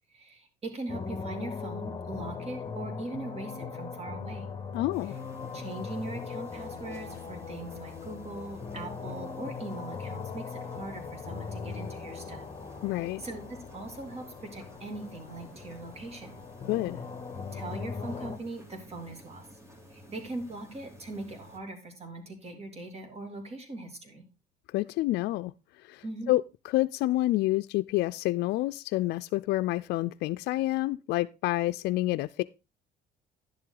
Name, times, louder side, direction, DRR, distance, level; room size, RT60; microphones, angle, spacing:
voice 1, 0.1-4.5 5.5-12.4 12.9-14.2 14.5-16.4 17.5-19.5 19.9-24.2 26.0-26.3, right 2 dB, 40° right, 2.9 m, -41 dB
sound 1, 0.9-18.4, left 5 dB, 25° left, 1.5 m, -40 dB
voice 2, 4.7-5.1 12.8-13.2 16.7-17.0 24.7-25.5 25.8-32.4, left 17 dB, 75° left, 0.4 m, -28 dB
sound 2, 4.9-21.6, equal, 15° right, 2.3 m, -52 dB
10.5 x 7.6 x 3.8 m
cardioid pair, 110°, 17 cm